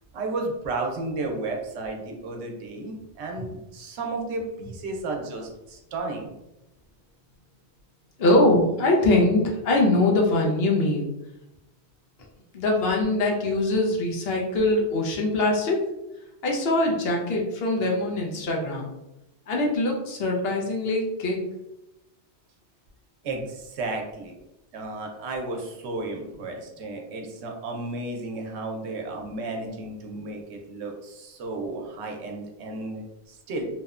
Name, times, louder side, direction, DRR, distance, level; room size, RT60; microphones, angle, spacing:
voice 1, 0.1-6.3 23.2-24.4 24.7-33.7, right 2 dB, 80° right, 2 dB, 0.9 m, -33 dB
voice 2, 8.2-11.1 12.5-15.8 16.4-18.9 19.5-21.4, left 2 dB, 70° left, 0 dB, 0.8 m, -22 dB
2.8 x 2.1 x 2.3 m, 0.92 s
omnidirectional pair, 1.1 m